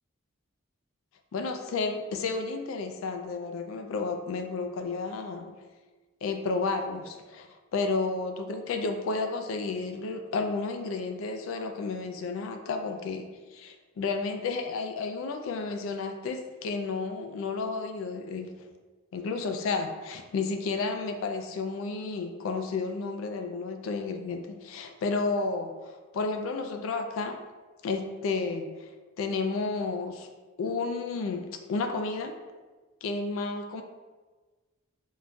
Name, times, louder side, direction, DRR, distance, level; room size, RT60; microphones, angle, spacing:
voice 1, 1.3-5.5 6.2-18.5 19.1-25.7 26.1-27.4 27.8-28.9 29.2-30.3 30.6-32.3 33.0-33.8, left 4 dB, 70° left, 6 dB, 0.3 m, -32 dB
3.6 x 2.5 x 2.3 m, 1.3 s
head